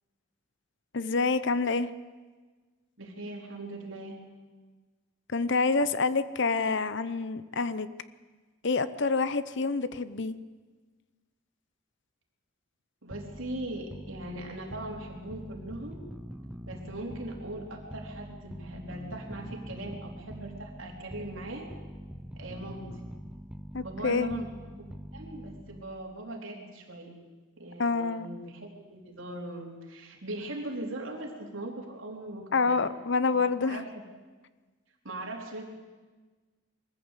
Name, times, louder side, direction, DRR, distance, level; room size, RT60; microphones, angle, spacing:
voice 1, 0.9-1.9 5.3-7.9 8.6-10.4 23.7-24.4 27.8-28.3 32.5-33.9, left 4 dB, 55° left, 15 dB, 0.8 m, -27 dB
voice 2, 3.0-4.2 13.0-16.0 16.7-21.7 22.4-22.9 23.8-27.1 27.6-32.8 33.3-33.9 35.0-35.6, right 1 dB, 65° right, 1 dB, 3.8 m, -40 dB
sound 1, 13.1-26.0, equal, 5° right, 0.7 m, -44 dB
22.0 x 14.5 x 8.3 m, 1.4 s
head